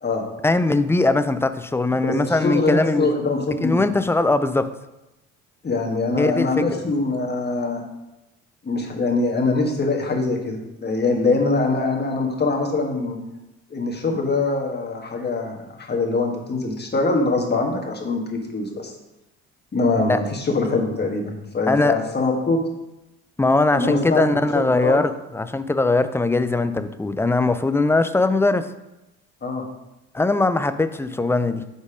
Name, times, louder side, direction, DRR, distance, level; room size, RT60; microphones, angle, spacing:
voice 1, 0.4-3.1 3.6-4.7 6.1-6.6 20.1-20.2 21.7-21.9 23.4-28.7 30.1-31.6, left 2 dB, 5° left, 11 dB, 0.3 m, -20 dB
voice 2, 1.9-3.8 5.6-7.8 8.6-13.2 13.7-18.9 19.7-22.6 23.7-24.4 24.6-25.0 29.4-29.6, left 3 dB, 25° left, 1 dB, 1.5 m, -23 dB
5.3 x 4.0 x 5.0 m, 0.96 s
hypercardioid pair, 60°, 36 cm